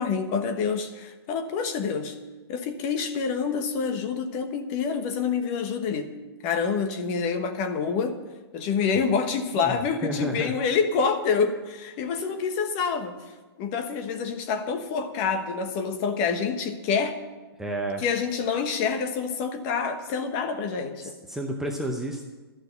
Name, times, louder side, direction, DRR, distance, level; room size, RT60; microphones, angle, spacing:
voice 1, 0.0-2.1 2.5-6.1 6.4-8.2 8.5-13.2 13.6-17.2 18.0-21.1, left 5 dB, 30° left, 7 dB, 1.1 m, -27 dB
voice 2, 9.5-10.5 17.6-18.0 21.0-22.3, right 1 dB, 5° right, 1 dB, 0.7 m, -31 dB
13.0 x 6.4 x 9.5 m, 1.2 s
hypercardioid pair, 150°, 13 cm